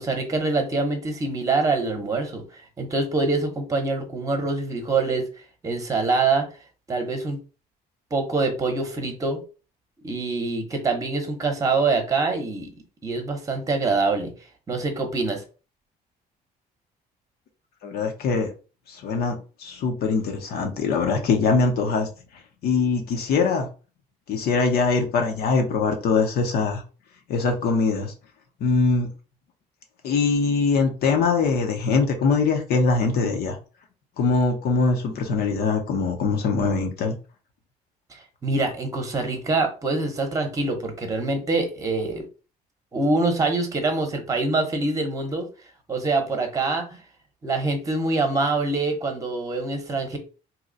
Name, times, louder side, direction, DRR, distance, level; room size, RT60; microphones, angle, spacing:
voice 1, 0.0-5.2 5.6-6.4 6.9-7.4 8.1-9.4 10.0-12.7 13.0-14.3 14.7-15.4 38.1-42.2 42.9-45.5 45.9-47.0 47.4-50.2, right 3 dB, 20° right, 1.0 m, -25 dB
voice 2, 17.8-18.5 18.9-22.1 22.6-23.7 24.3-26.8 27.3-28.1 28.6-29.1 30.0-33.6 34.2-37.1, left 4 dB, 65° left, 0.9 m, -22 dB
2.9 x 2.3 x 4.0 m
cardioid pair, 110°, 17 cm